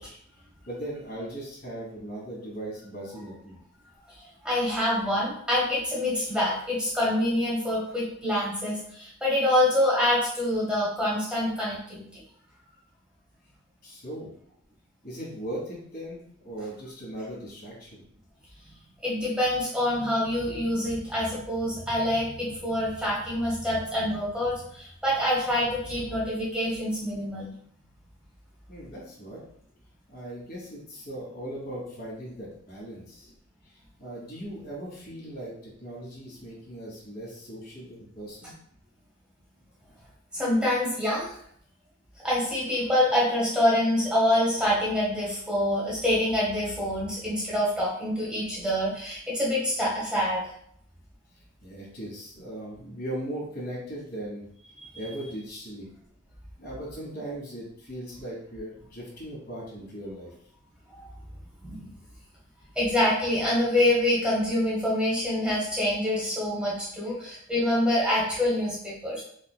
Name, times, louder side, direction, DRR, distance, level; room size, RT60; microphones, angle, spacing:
voice 1, 0.0-3.6 3.8-3.9 13.8-14.3 15.0-18.0 28.7-29.4 30.1-33.3 34.0-38.5 51.6-54.4 54.9-55.9 56.6-60.3 67.0-67.1, right 1 dB, 50° left, -5 dB, 1.4 m, -38 dB
voice 2, 4.4-12.2 19.0-27.5 40.3-41.4 42.2-50.4 54.8-55.0 60.9-61.1 61.6-61.9 62.7-69.2, left 1 dB, 5° right, -6 dB, 1.0 m, -26 dB
5.0 x 2.4 x 2.2 m, 0.65 s
head